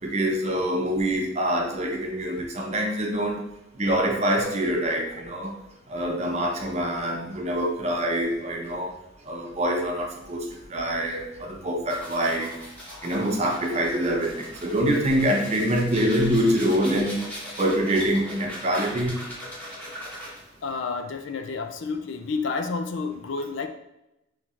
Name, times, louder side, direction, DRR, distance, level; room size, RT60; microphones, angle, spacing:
voice 1, 0.0-3.4 3.7-5.5 5.9-8.9 9.3-12.5 13.0-17.2 17.6-19.2, right 1 dB, 35° right, 1 dB, 0.7 m, -25 dB
sound 1, 11.9-20.6, equal, 10° left, 1.4 m, -40 dB
voice 2, 20.6-23.7, left 4 dB, 70° left, 7 dB, 0.4 m, -30 dB
5.8 x 3.2 x 2.4 m, 0.93 s
head